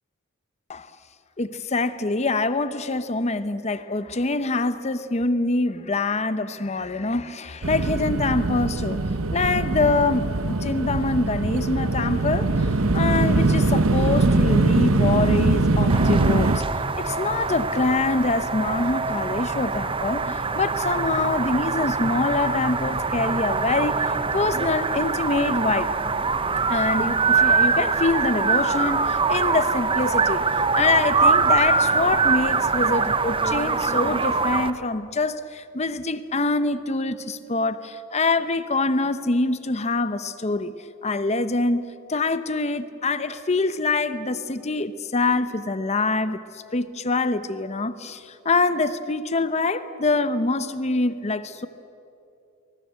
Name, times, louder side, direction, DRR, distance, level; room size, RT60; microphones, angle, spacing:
voice 1, 1.4-9.0 9.3-25.9 26.7-30.5 30.8-40.7 41.0-41.8 42.1-51.7, left 3 dB, 30° left, 12 dB, 0.8 m, -25 dB
sound 1, 7.6-16.6, right 2 dB, 70° right, 1.0 m, -22 dB
sound 2, 15.9-34.7, right 4 dB, 25° right, 0.8 m, -23 dB
24.5 x 21.0 x 8.2 m, 2.7 s
head